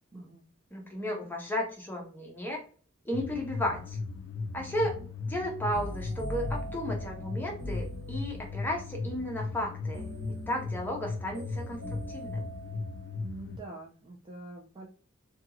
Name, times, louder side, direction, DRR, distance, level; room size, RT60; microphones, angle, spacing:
voice 1, 0.1-0.5 4.5-5.1 13.1-14.9, right 2 dB, 20° right, -2 dB, 0.4 m, -46 dB
voice 2, 0.7-2.6 3.1-4.0 4.5-5.0 5.2-10.1 10.5-11.8 12.1-12.5, left 1 dB, 10° left, -1 dB, 0.7 m, -34 dB
sound 1, 3.1-13.6, left 3 dB, 60° left, 0.4 m, -37 dB
sound 2, 5.7-8.7 9.9-13.2, equal, 80° right, 1.1 m, -41 dB
2.5 x 2.3 x 2.9 m, 0.41 s
head